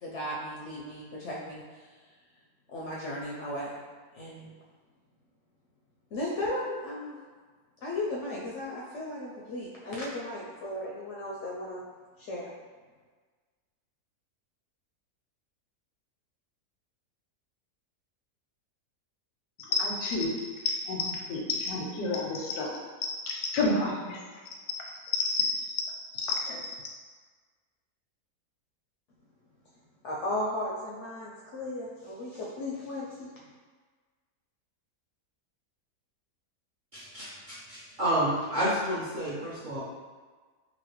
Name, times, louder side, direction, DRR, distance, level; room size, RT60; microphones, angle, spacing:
voice 1, 0.0-1.6 2.7-3.8 4.1-4.5 6.1-7.2 7.8-11.8 12.2-12.5 30.0-33.3, left 1 dB, 70° left, -5 dB, 0.7 m, -35 dB
voice 2, 19.6-20.3 20.9-22.7 23.3-24.2 25.3-25.5 26.2-26.6, left 3 dB, 85° left, -1 dB, 1.1 m, -29 dB
voice 3, 36.9-39.8, equal, 50° right, -10 dB, 0.6 m, -30 dB
3.1 x 2.6 x 3.0 m, 1.4 s
omnidirectional pair, 1.6 m